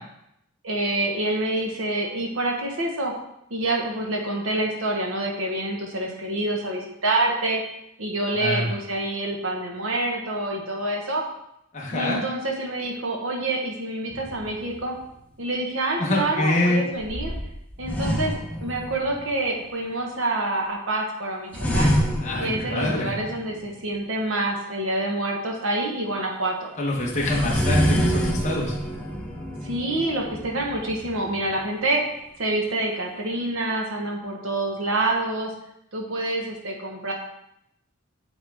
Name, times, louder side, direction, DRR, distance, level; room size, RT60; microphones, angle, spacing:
voice 1, 0.6-3.1 3.5-7.6 8.0-11.2 11.9-15.0 15.4-17.3 17.8-21.9 22.4-26.7 29.6-32.0 32.4-35.5 35.9-37.1, right 2 dB, 70° right, 0 dB, 1.2 m, -27 dB
voice 2, 8.3-8.7 11.7-12.2 16.0-16.8 22.2-23.1 26.8-28.7, left 1 dB, 35° left, -4 dB, 1.1 m, -24 dB
sound 1, 14.1-15.1 17.0-19.3 21.5-23.7 27.0-31.7, equal, 5° left, 0.6 m, -27 dB
8.2 x 3.6 x 3.5 m, 0.79 s
head